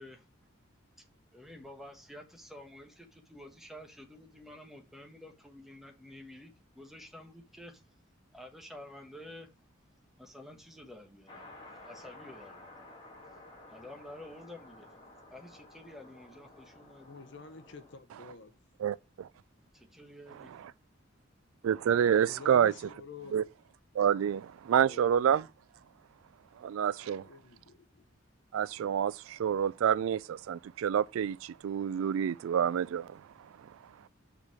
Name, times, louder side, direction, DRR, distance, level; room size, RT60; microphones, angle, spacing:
voice 1, 1.3-7.8 8.3-9.5 10.2-11.5 11.8-12.7 13.7-14.9 15.3-17.2 19.7-20.5, left 1 dB, ahead, 1.2 m, -50 dB
sound 1, 11.3-18.0, left 2 dB, 25° left, 2.1 m, -53 dB
voice 2, 17.1-18.5 22.1-23.5 24.8-25.4 27.0-28.0, left 4 dB, 60° left, 0.9 m, -48 dB
voice 3, 18.8-19.3 21.6-22.7 23.3-23.4 23.9-25.5 26.6-27.2 28.5-33.2, right 8 dB, 80° right, 0.3 m, -28 dB
5.7 x 4.9 x 4.7 m
head